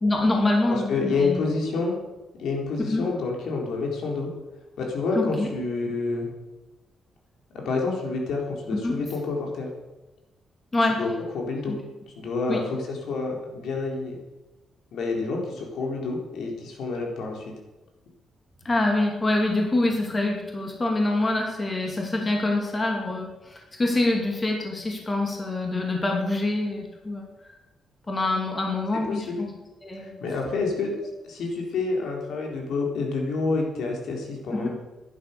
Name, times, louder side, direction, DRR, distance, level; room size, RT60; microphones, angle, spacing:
voice 1, 0.0-1.4 2.8-3.0 5.1-5.5 8.7-9.0 10.7-11.0 11.7-11.8 12.5-12.6 18.6-27.5 28.1-29.5 29.8-30.2 34.5-34.7, left 2 dB, 20° left, 1 dB, 2.5 m, -25 dB
voice 2, 0.7-1.9 2.4-4.3 4.8-6.3 7.5-9.7 11.0-11.1 11.3-11.8 12.2-14.2 14.9-17.5 29.0-29.4 30.0-30.9 31.2-34.7, left 3 dB, 75° left, 0 dB, 4.1 m, -28 dB
14.5 x 11.0 x 6.9 m, 1.1 s
wide cardioid pair, 170°, 0 cm